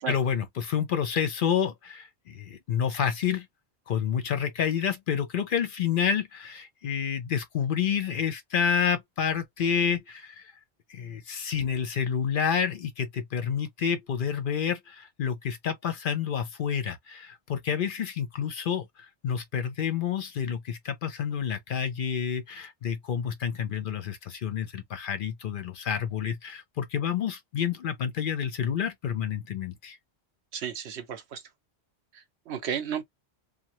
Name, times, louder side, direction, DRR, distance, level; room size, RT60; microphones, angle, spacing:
voice 1, 0.1-3.5 3.9-10.5 10.9-30.0, left 7 dB, 60° left, 0.7 m, -29 dB
voice 2, 30.5-31.4 32.1-33.0, right 8 dB, 80° right, 0.9 m, -33 dB
2.7 x 2.2 x 3.0 m
omnidirectional pair, 1.1 m